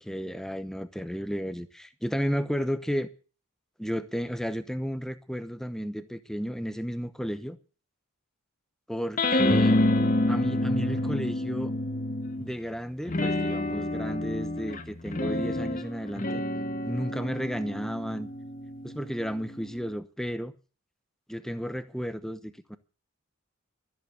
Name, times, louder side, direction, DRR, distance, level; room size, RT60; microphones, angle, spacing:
voice 1, 0.0-3.1 3.8-7.6 8.9-9.8 10.3-11.7 12.4-18.3 18.8-20.5 21.3-22.8, equal, ahead, 0.9 m, -33 dB
sound 1, 9.2-12.5 13.1-19.9, left 1 dB, 40° left, 1.2 m, -28 dB
13.0 x 8.0 x 8.4 m
head